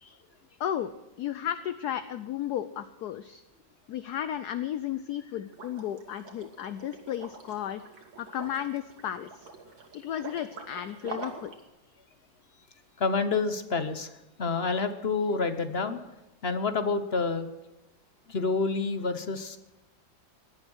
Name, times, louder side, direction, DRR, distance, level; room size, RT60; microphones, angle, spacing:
voice 1, 0.6-0.9 1.2-3.4 3.9-7.8 8.2-9.5 9.9-11.5, left 10 dB, 65° left, 12 dB, 1.1 m, -34 dB
Liquid, 5.5-11.6, right 3 dB, 85° right, 3.0 m, -45 dB
voice 2, 13.0-14.1 14.4-16.0 16.4-17.5 18.3-19.6, left 4 dB, 40° left, 10 dB, 1.0 m, -28 dB
18.0 x 11.5 x 6.3 m, 0.99 s
omnidirectional pair, 2.1 m